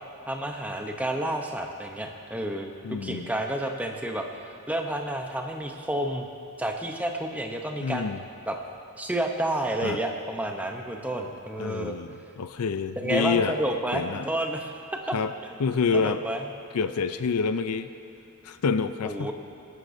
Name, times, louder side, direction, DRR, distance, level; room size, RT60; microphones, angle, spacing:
voice 1, 0.3-4.3 4.7-6.3 6.6-8.1 8.5-8.6 9.0-11.9 13.0-14.7 15.1-15.2 15.9-16.4 19.0-19.3, right 1 dB, 5° right, 2 dB, 0.8 m, -30 dB
voice 2, 2.8-3.3 7.8-8.2 9.8-10.0 11.6-13.6 13.9-14.3 15.1-15.3 15.6-16.2 16.7-17.9 18.4-19.3, left 5 dB, 90° left, 11 dB, 0.5 m, -27 dB
23.0 x 11.0 x 2.7 m, 2.8 s
head